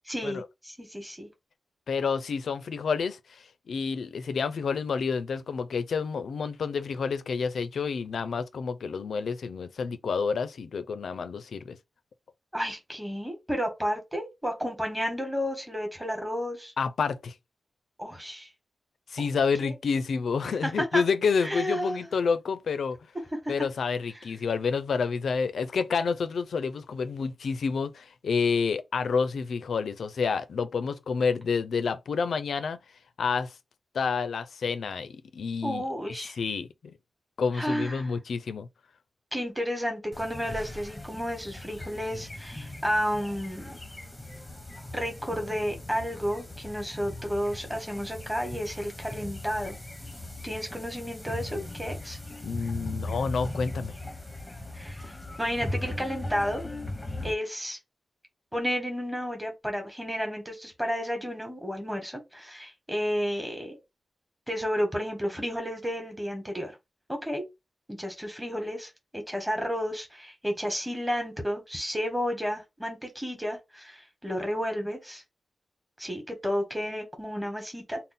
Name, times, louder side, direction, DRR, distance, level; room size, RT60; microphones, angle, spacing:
voice 1, 0.1-1.3 12.5-16.7 18.0-18.5 19.6-20.0 20.4-21.0 21.4-22.0 23.3-23.7 35.6-36.4 37.5-38.1 39.3-43.8 44.9-49.8 50.4-52.2 54.7-56.6 57.2-57.8 58.5-63.8 64.5-66.7 67.1-67.4 67.9-75.2 76.0-78.1, equal, 5° right, 1.1 m, -32 dB
voice 2, 1.9-3.2 3.7-11.8 16.8-17.3 19.1-23.0 23.5-32.8 33.2-33.5 33.9-35.8 36.2-36.9 37.4-38.7 52.4-53.9, left 5 dB, 85° left, 0.4 m, -29 dB
sound 1, 40.1-57.3, left 1 dB, 10° left, 0.7 m, -39 dB
3.6 x 2.0 x 4.0 m
wide cardioid pair, 135°, 0 cm